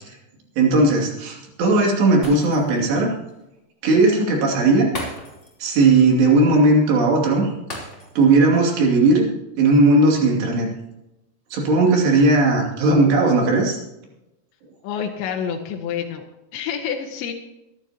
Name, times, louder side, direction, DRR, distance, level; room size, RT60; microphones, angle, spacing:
voice 1, 0.6-3.1 3.8-4.9 5.6-7.5 8.2-9.3 9.6-10.7 11.5-13.8, right 2 dB, 75° right, -1 dB, 4.7 m, -17 dB
Shatter, 2.2-2.9 3.3-3.4 4.9-5.7 6.0-6.2 7.7-8.4 8.8-8.9, left 1 dB, 20° left, 2.8 m, -36 dB
voice 2, 14.8-16.2 16.5-17.3, left 8 dB, 85° left, 1 dB, 3.3 m, -28 dB
23.5 x 11.5 x 2.9 m, 0.91 s
omnidirectional pair, 5.0 m